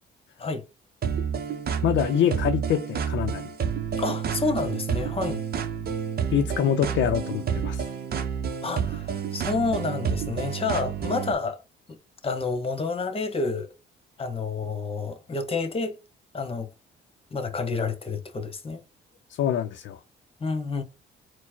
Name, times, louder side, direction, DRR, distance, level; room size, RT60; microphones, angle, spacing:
sound 1, 1.0-11.3, right 7 dB, 50° right, 0.7 m, -29 dB
voice 1, 1.8-3.5 6.3-7.8 19.4-20.0, left 9 dB, 70° left, 0.5 m, -25 dB
voice 2, 4.0-5.4 8.6-11.6 12.2-13.7 14.2-16.0 16.3-16.7 17.3-18.8 20.4-20.8, left 4 dB, 30° left, 1.0 m, -29 dB
4.5 x 2.1 x 4.3 m
cardioid pair, 90°, 20 cm